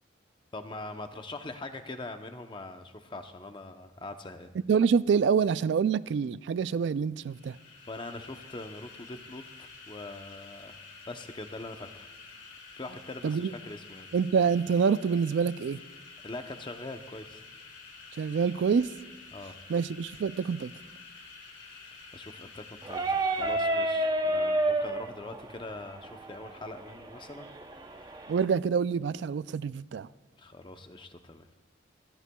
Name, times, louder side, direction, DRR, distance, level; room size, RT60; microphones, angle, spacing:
voice 1, 0.5-4.5 7.9-10.8 11.1-12.1 12.8-14.1 16.2-17.4 19.3-19.6 21.7-28.3 30.4-31.5, left 2 dB, 25° left, 0.7 m, -43 dB
voice 2, 4.7-7.6 13.2-13.5 14.1-15.8 18.2-18.9 19.7-20.7 28.3-30.1, right 6 dB, 70° right, 0.3 m, -26 dB
sound 1, 7.2-24.1, left 4 dB, 75° left, 2.0 m, -50 dB
sound 2, 22.8-28.5, right 1 dB, 20° right, 0.7 m, -31 dB
27.5 x 11.0 x 2.3 m
head